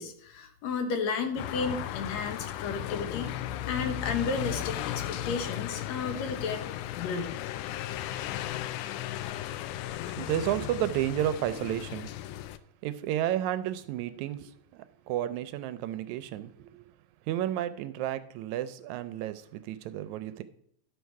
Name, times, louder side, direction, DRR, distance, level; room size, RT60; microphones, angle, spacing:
voice 1, 0.0-3.3 3.7-6.6 6.9-7.4, left 5 dB, 70° left, 2.0 m, -33 dB
sound 1, 1.4-12.6, left 13 dB, 85° left, 2.0 m, -35 dB
voice 2, 10.2-12.1 12.8-16.8 17.3-20.4, right 12 dB, 80° right, 1.8 m, -32 dB
11.5 x 6.4 x 4.6 m
omnidirectional pair, 3.5 m